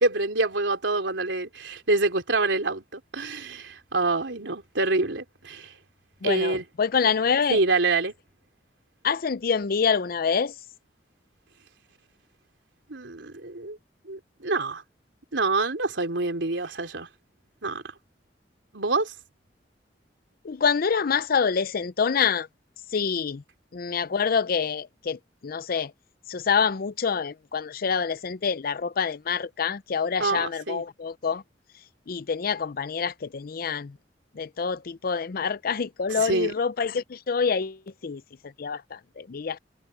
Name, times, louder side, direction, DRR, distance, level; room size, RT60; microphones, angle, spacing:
voice 1, 0.0-5.7 6.2-6.6 7.5-8.1 12.9-13.8 14.1-14.8 15.3-17.1 17.6-17.8 18.7-19.1 30.2-30.8 36.1-36.5, right 3 dB, 85° right, 3.3 m, -26 dB
voice 2, 6.2-7.6 9.0-10.5 20.4-22.5 22.9-23.4 23.7-25.9 26.3-31.4 32.1-34.0 34.3-39.6, left 6 dB, 55° left, 0.5 m, -26 dB
head